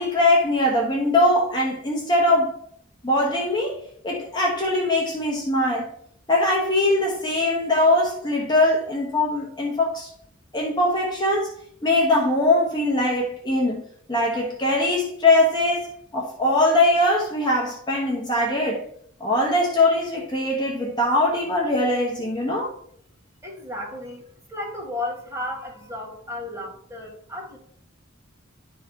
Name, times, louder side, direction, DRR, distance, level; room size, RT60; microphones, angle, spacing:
voice 1, 0.0-2.6 3.0-3.8 4.0-5.9 6.3-10.1 10.5-11.5 11.8-13.8 14.1-18.8 19.2-22.7, left 1 dB, 20° left, 1.1 m, -21 dB
voice 2, 23.4-27.6, left 1 dB, 15° right, 1.9 m, -34 dB
11.0 x 3.8 x 4.5 m
head